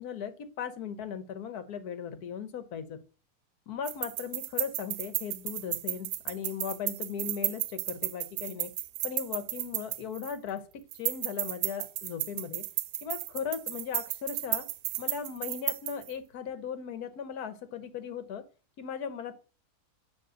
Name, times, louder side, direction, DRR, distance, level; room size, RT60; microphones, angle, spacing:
voice 1, 0.0-3.0 3.7-8.7 9.0-12.6 13.0-14.7 15.0-18.4 18.8-19.3, left 7 dB, 70° left, 10 dB, 1.4 m, -37 dB
sound 1, 3.8-10.5 10.9-16.1, right 14 dB, 85° right, 1.2 m, -33 dB
9.3 x 3.2 x 6.2 m, 0.35 s
omnidirectional pair, 1.7 m